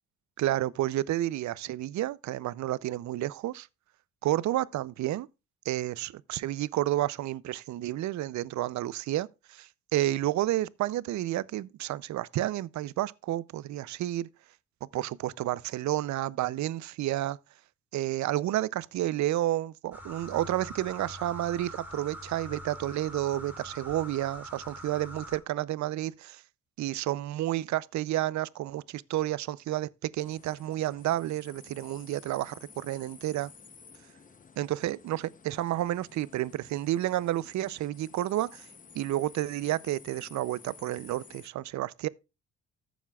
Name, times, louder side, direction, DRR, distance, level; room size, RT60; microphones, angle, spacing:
voice 1, 0.4-3.7 4.2-5.3 5.7-14.3 14.9-17.4 17.9-26.4 26.8-33.5 34.6-38.7 38.9-42.1, right 14 dB, 70° right, 0.5 m, -31 dB
sound 1, 19.9-25.4, equal, 5° right, 2.7 m, -44 dB
sound 2, 30.2-41.5, left 5 dB, 25° left, 0.7 m, -53 dB
14.5 x 7.2 x 2.3 m
cardioid pair, 90°, 30 cm